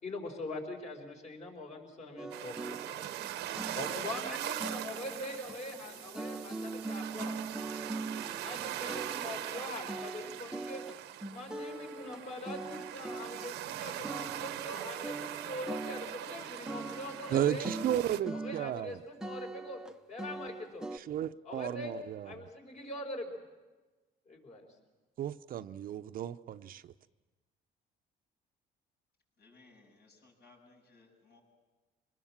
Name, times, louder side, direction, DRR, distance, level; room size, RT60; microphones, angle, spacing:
voice 1, 0.0-3.1 3.5-7.4 8.4-10.8 11.3-17.7 18.3-19.8 20.1-20.9 21.4-22.0 22.2-23.3 24.3-24.7, left 2 dB, 45° left, 4.8 m, -43 dB
sound 1, 2.2-13.8 14.0-14.8 15.0-17.3 17.6-18.9 19.2-21.0, right 2 dB, 5° right, 0.7 m, -42 dB
sound 2, 2.3-18.2, right 13 dB, 85° right, 1.0 m, -41 dB
voice 2, 17.3-19.0 20.9-22.5 25.2-26.8, right 11 dB, 60° right, 0.7 m, -34 dB
voice 3, 29.4-31.4, left 3 dB, 70° left, 7.8 m, -61 dB
25.0 x 20.0 x 7.4 m
cardioid pair, 110°, 17 cm